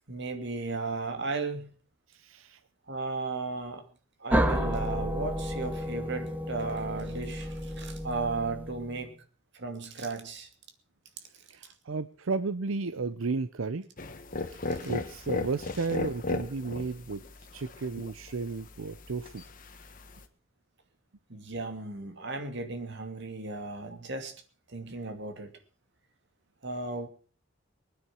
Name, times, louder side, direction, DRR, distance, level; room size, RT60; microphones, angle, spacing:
voice 1, 0.1-1.7 2.9-3.8 4.2-9.2 9.5-10.5 21.3-24.4 24.7-25.5 26.6-27.1, right 3 dB, 60° right, 2.5 m, -35 dB
voice 2, 2.1-2.6 11.5-13.9 14.5-17.2 17.5-19.4, right 4 dB, 85° right, 0.7 m, -33 dB
sound 1, 4.3-9.0, equal, 10° right, 1.2 m, -31 dB
sound 2, 14.0-20.2, left 2 dB, 45° left, 1.5 m, -37 dB
20.5 x 9.7 x 6.2 m
head